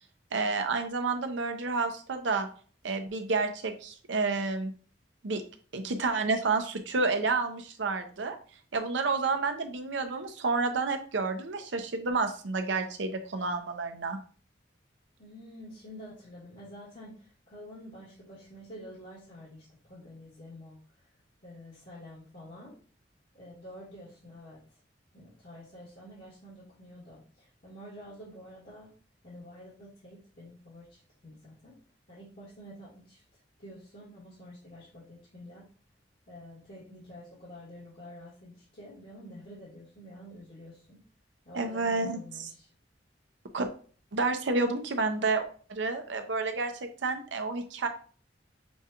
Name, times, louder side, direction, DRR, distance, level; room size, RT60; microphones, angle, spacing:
voice 1, 0.3-2.5 2.8-4.7 5.2-5.4 5.7-8.4 8.7-14.2 41.5-42.5 43.5-43.7 44.1-45.4 45.7-46.7 47.0-47.9, right 3 dB, 80° right, 7 dB, 0.6 m, -30 dB
voice 2, 15.2-20.8 21.4-22.8 23.3-24.8 25.1-28.9 29.2-31.7 32.1-33.2 33.6-35.7 36.3-41.0 41.5-42.7, equal, 60° left, -8 dB, 1.9 m, -48 dB
6.2 x 2.4 x 2.9 m, 0.42 s
head